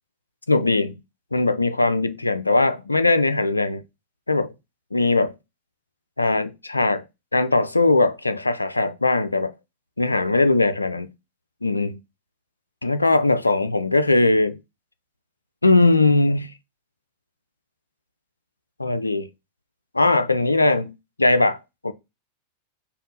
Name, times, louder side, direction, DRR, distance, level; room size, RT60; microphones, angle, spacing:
voice 1, 0.5-1.0 1.3-3.8 4.3-4.5 4.9-5.3 6.2-7.0 7.3-9.5 10.0-11.1 11.6-12.0 12.8-14.6 15.6-16.5 18.8-19.3 19.9-21.6 21.8-21.9, left 2 dB, 80° left, 0.3 m, -20 dB
3.4 x 2.3 x 3.9 m
figure-of-eight pair, 90°, 0 cm